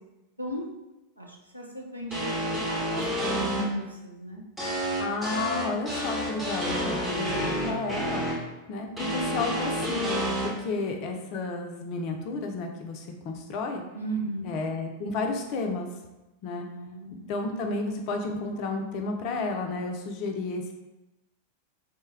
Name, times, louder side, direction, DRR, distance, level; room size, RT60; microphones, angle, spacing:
voice 1, 1.2-4.7 13.9-14.6 16.7-17.3, right 1 dB, 85° right, -1 dB, 0.5 m, -35 dB
sound 1, 2.1-3.6 4.6-8.3 9.0-10.5, equal, 5° right, 1.1 m, -29 dB
voice 2, 5.0-8.3 8.7-10.1 10.4-13.8 14.4-15.9 16.4-16.7 17.3-20.8, left 3 dB, 40° left, 3 dB, 0.5 m, -32 dB
3.0 x 2.2 x 3.3 m, 1.0 s
figure-of-eight pair, 90°, 0 cm